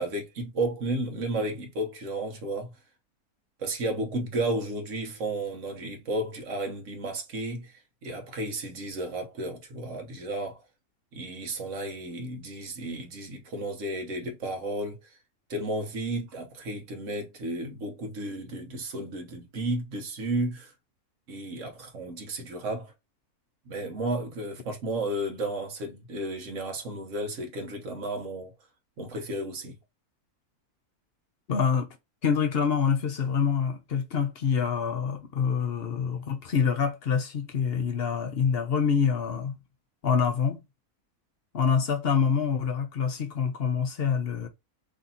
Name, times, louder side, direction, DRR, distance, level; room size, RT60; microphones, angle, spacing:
voice 1, 0.0-2.7 3.6-10.6 11.1-15.0 15.5-20.7 21.3-22.9 23.7-28.5 29.0-29.7, right 1 dB, 60° right, 1.3 m, -33 dB
voice 2, 31.5-31.9 32.2-39.5 40.0-40.6 41.5-44.5, left 6 dB, 55° left, 0.7 m, -26 dB
3.2 x 2.7 x 4.0 m
omnidirectional pair, 1.6 m